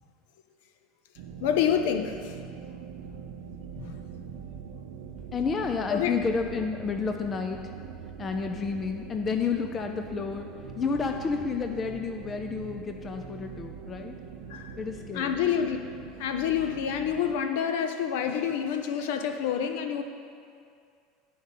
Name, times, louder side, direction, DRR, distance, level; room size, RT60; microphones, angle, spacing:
sound 1, 1.2-17.3, right 7 dB, 75° right, 0.6 m, -43 dB
voice 1, 1.4-2.3 3.8-4.0 5.9-6.1 14.5-14.7 15.1-15.8 16.2-20.0, left 8 dB, 75° left, 6 dB, 0.7 m, -27 dB
voice 2, 5.3-7.7 8.2-10.5 10.8-14.2 14.8-15.4, left 5 dB, 20° left, 5 dB, 0.4 m, -30 dB
9.6 x 5.1 x 5.3 m, 2.3 s
supercardioid pair, 155°, 0 cm